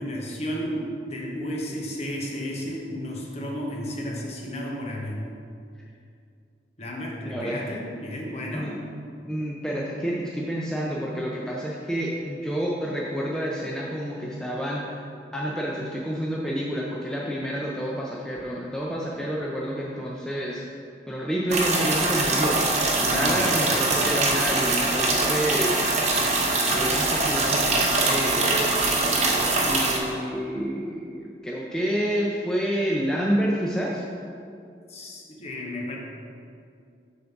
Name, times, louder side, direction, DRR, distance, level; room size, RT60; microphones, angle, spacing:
voice 1, 0.0-5.3 6.8-8.7 23.1-23.4 34.9-36.0, equal, 35° left, -1 dB, 1.0 m, -32 dB
voice 2, 7.2-7.6 8.5-8.8 9.2-14.8 15.3-20.6 21.1-22.6 23.0-26.1 26.7-28.7 29.6-34.0, equal, 5° left, -4 dB, 0.5 m, -29 dB
sound 1, 21.5-30.0, right 2 dB, 40° right, 0.8 m, -23 dB
7.0 x 3.9 x 5.8 m, 2.4 s
head